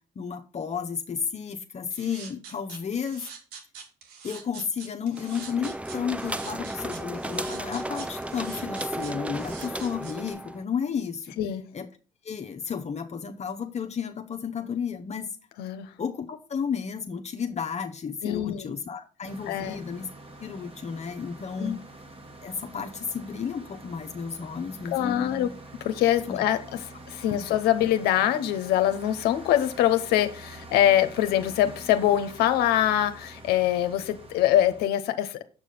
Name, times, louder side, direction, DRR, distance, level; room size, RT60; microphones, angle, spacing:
voice 1, 0.2-3.2 4.2-11.4 11.7-11.9 12.2-15.3 16.0-20.1 20.4-21.8 22.4-25.5 26.3-26.4 27.3-27.4, left 6 dB, 45° left, 0.8 m, -32 dB
sound 1, 1.9-10.3, right 6 dB, 90° right, 1.3 m, -44 dB
sound 2, 5.2-10.6, right 1 dB, 10° right, 0.5 m, -34 dB
voice 2, 15.6-15.9 18.2-18.7 19.5-19.8 21.6-21.8 24.9-25.5 25.8-26.8 27.1-35.4, left 12 dB, 85° left, 0.8 m, -24 dB
sound 3, 19.2-34.9, right 2 dB, 35° right, 1.9 m, -46 dB
7.6 x 4.9 x 5.5 m
supercardioid pair, 65°, 16 cm